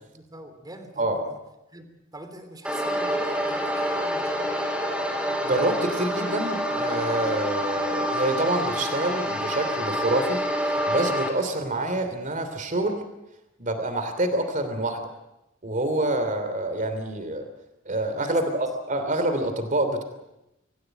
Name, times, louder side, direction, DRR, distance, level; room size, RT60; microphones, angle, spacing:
voice 1, 0.1-1.4 1.7-4.5 18.2-18.6, right 1 dB, 20° right, 7 dB, 3.3 m, -43 dB
sound 1, 2.6-11.3, equal, 5° right, 4.4 m, -27 dB
voice 2, 5.4-13.0 13.6-15.0 15.6-17.4 17.8-20.0, right 1 dB, 40° right, 8 dB, 3.0 m, -27 dB
26.0 x 15.0 x 9.1 m, 0.92 s
head